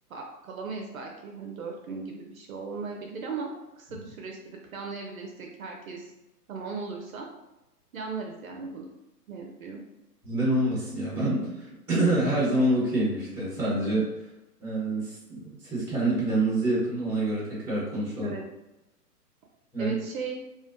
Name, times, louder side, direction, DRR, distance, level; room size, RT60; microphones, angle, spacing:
voice 1, 0.1-6.1 6.5-7.3 7.9-8.9 9.3-9.8 18.1-18.4 19.8-20.4, right 4 dB, 60° right, 1 dB, 0.5 m, -37 dB
voice 2, 10.2-14.1 14.6-18.3 19.7-20.0, right 1 dB, 5° right, -7 dB, 0.8 m, -26 dB
2.4 x 2.2 x 2.5 m, 0.95 s
hypercardioid pair, 135°, 49 cm